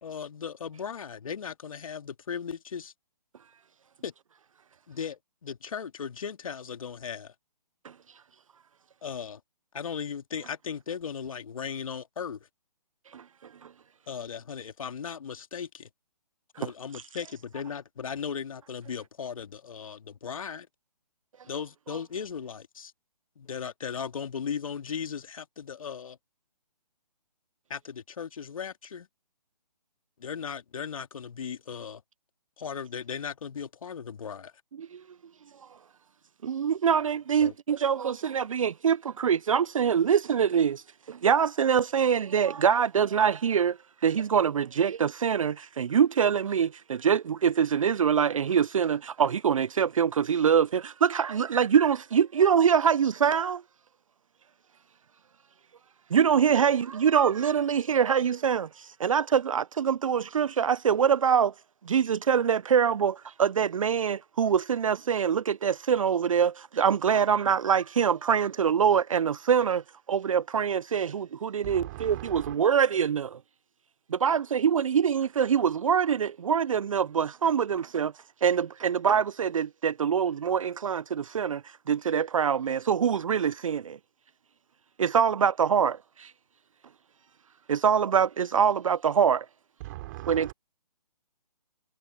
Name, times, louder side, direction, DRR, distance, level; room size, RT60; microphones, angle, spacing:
voice 1, 0.0-2.9 4.0-4.1 4.9-7.3 9.0-9.4 9.7-12.4 14.1-15.9 16.6-20.7 21.5-22.9 23.4-26.2 27.7-29.1 30.2-32.0 32.6-34.5 37.4-37.5, left 7 dB, 55° left, 2.4 m, -37 dB
voice 2, 36.4-43.8 44.0-53.6 56.1-61.5 61.9-73.4 74.1-78.1 78.4-81.6 81.9-84.0 85.0-86.3 87.7-89.5 90.3-90.5, right 7 dB, 50° right, 0.8 m, -24 dB
voice 3, 71.6-72.6 89.8-90.5, right 18 dB, 30° right, 3.8 m, -39 dB
figure-of-eight pair, 145°, 21 cm